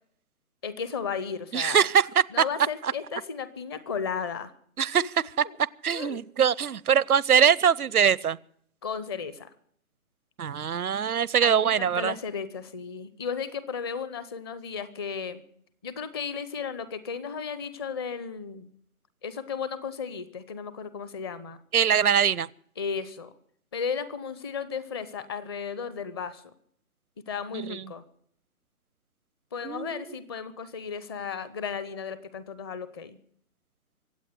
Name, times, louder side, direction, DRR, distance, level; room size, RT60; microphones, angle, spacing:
voice 1, 0.6-1.9 2.3-4.5 4.8-5.1 5.4-5.6 5.9-6.2 8.8-9.5 11.4-15.4 15.8-18.7 19.2-21.6 22.8-23.3 23.7-26.5 27.2-28.0 29.5-33.2, left 6 dB, 20° left, 15 dB, 0.7 m, -34 dB
voice 2, 1.5-2.2 2.8-2.9 4.8-5.4 5.8-8.4 10.4-12.1 21.7-22.5 27.5-27.8 29.6-30.0, right 8 dB, 85° right, 23 dB, 0.8 m, -23 dB
24.5 x 8.5 x 6.6 m, 0.64 s
hypercardioid pair, 145°, 43 cm